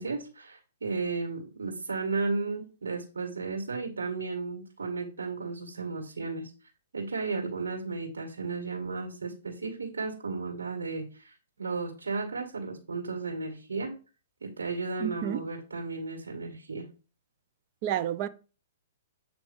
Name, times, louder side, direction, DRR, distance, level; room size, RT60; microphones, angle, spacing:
voice 1, 0.0-6.5 6.9-13.9 14.4-16.9, right 4 dB, 85° right, 1.9 m, -34 dB
voice 2, 15.0-15.4 17.8-18.3, right 11 dB, 40° right, 0.6 m, -30 dB
7.8 x 3.0 x 5.4 m
hypercardioid pair, 135°, 0 cm